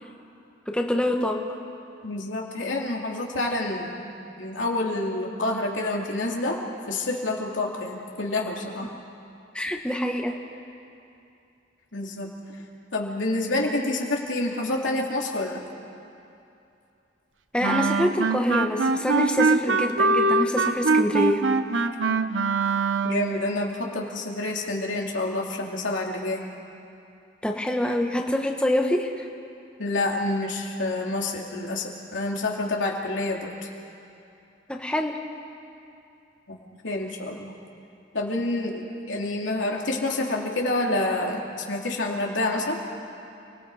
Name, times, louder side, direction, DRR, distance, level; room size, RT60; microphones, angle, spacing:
voice 1, 0.7-1.4 9.5-10.4 17.5-21.4 27.4-29.3 34.7-35.2, left 1 dB, 5° left, 2 dB, 1.1 m, -25 dB
voice 2, 2.0-3.9 4.4-6.6 6.9-8.9 11.9-12.3 12.5-12.6 12.9-15.6 23.0-26.4 29.8-33.5 36.5-37.5 38.1-42.8, left 2 dB, 90° left, 0 dB, 2.7 m, -28 dB
Wind instrument woodwind instrument, 17.6-23.4, right 3 dB, 80° right, 0.8 m, -23 dB
29.5 x 18.5 x 4.8 m, 2.7 s
head